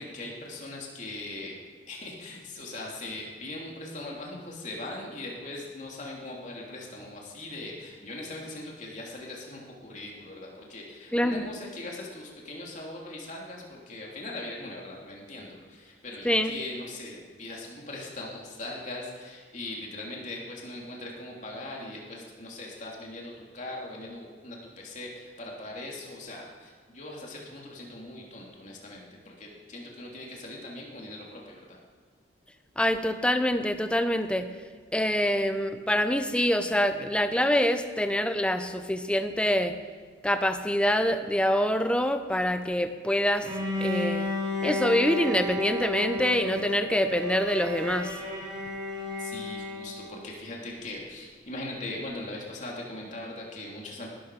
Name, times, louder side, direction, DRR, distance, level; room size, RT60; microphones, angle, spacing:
voice 1, 0.0-1.6 1.9-31.8 49.2-54.1, left 2 dB, 45° left, -2 dB, 3.1 m, -40 dB
voice 2, 11.1-11.4 16.2-16.6 32.8-34.5 34.9-39.7 40.2-43.5 43.8-44.3 44.6-48.1, equal, 5° left, 8 dB, 0.8 m, -25 dB
Bowed string instrument, 43.4-50.2, left 1 dB, 25° right, 3.4 m, -32 dB
19.5 x 13.0 x 4.9 m, 1.5 s
head